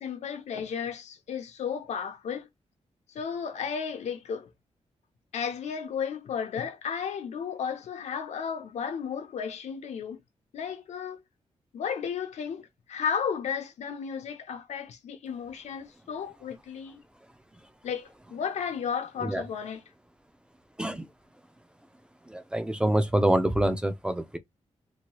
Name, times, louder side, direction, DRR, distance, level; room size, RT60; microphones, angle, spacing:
voice 1, 0.0-2.5 3.1-4.5 5.3-10.2 10.5-11.2 11.7-17.0 17.8-19.8, left 7 dB, 90° left, 0.7 m, -34 dB
voice 2, 22.3-24.4, right 1 dB, 10° right, 0.4 m, -26 dB
2.8 x 2.3 x 2.9 m
wide cardioid pair, 160°, 11 cm